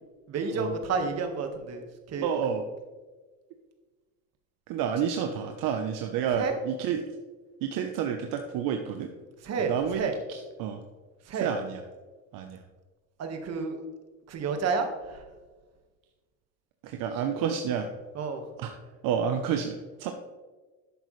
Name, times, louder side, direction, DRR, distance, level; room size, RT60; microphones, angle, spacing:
voice 1, 0.3-2.3 6.4-6.5 9.4-10.1 11.2-11.5 13.2-13.8 14.3-15.3 18.2-18.5, right 5 dB, 45° right, 5 dB, 1.7 m, -30 dB
voice 2, 2.2-2.6 4.7-7.1 7.6-9.1 9.6-10.0 10.3-10.8 11.3-11.8 12.3-12.6 16.8-17.9 18.6-18.7 19.0-20.1, right 7 dB, 65° right, 5 dB, 0.9 m, -30 dB
11.0 x 8.2 x 3.2 m, 1.3 s
cardioid pair, 125°, 36 cm